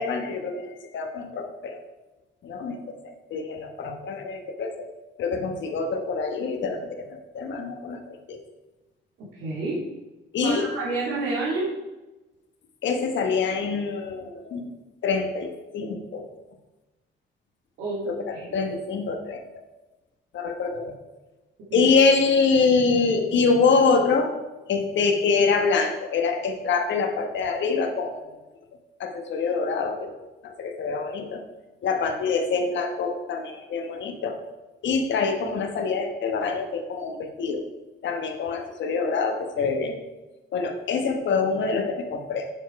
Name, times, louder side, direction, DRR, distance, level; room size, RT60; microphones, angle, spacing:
voice 1, 0.0-1.8 2.4-4.9 5.2-8.4 10.3-10.7 12.8-14.7 15.0-16.2 18.0-19.6 20.3-21.0 21.7-24.3 24.7-28.3 29.0-30.1 30.4-31.4 31.8-34.4 34.8-37.6 38.0-40.0 40.5-42.5, left 4 dB, 70° left, 5 dB, 1.3 m, -25 dB
voice 2, 9.3-9.8 10.4-11.7 17.8-18.6 21.7-21.9, right 3 dB, 80° right, -7 dB, 2.2 m, -29 dB
7.3 x 7.1 x 4.7 m, 1.1 s
cardioid pair, 90°, 20 cm